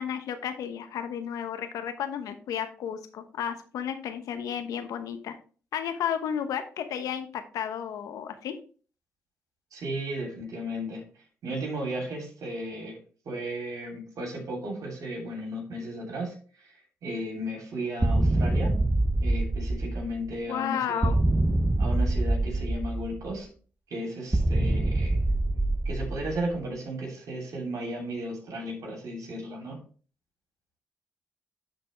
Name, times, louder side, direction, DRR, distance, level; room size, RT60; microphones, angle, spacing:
voice 1, 0.0-5.4 5.7-7.3 7.5-8.5 20.5-21.2, left 8 dB, 80° left, 8 dB, 1.0 m, -32 dB
voice 2, 9.7-11.0 11.4-13.0 13.2-16.3 17.0-18.8 19.2-21.1 21.8-23.5 23.9-25.2 25.8-29.8, right 1 dB, 75° right, 1 dB, 3.1 m, -34 dB
sound 1, 18.0-20.3 21.0-23.3 24.3-26.6, right 2 dB, 20° right, 0.6 m, -25 dB
11.5 x 4.2 x 3.2 m, 0.40 s
supercardioid pair, 50°, 6 cm